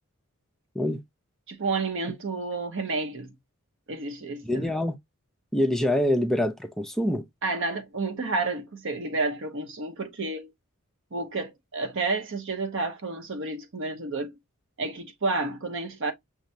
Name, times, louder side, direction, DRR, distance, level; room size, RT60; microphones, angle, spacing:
voice 1, 1.5-3.3 3.9-4.7 7.4-10.5 11.1-14.3 14.8-16.1, right 3 dB, 60° right, 0.7 m, -30 dB
voice 2, 4.4-4.9 5.5-7.2, left 1 dB, ahead, 0.4 m, -25 dB
5.7 x 2.1 x 2.6 m
head